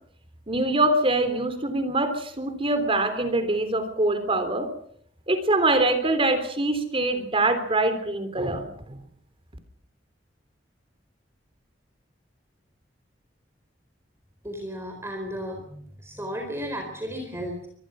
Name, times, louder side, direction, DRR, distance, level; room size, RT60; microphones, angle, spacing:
voice 1, 0.5-4.7 5.3-9.0, right 2 dB, 30° right, 10 dB, 3.5 m, -24 dB
voice 2, 14.4-17.7, equal, 15° right, 3 dB, 4.2 m, -34 dB
24.5 x 20.5 x 6.3 m, 0.65 s
head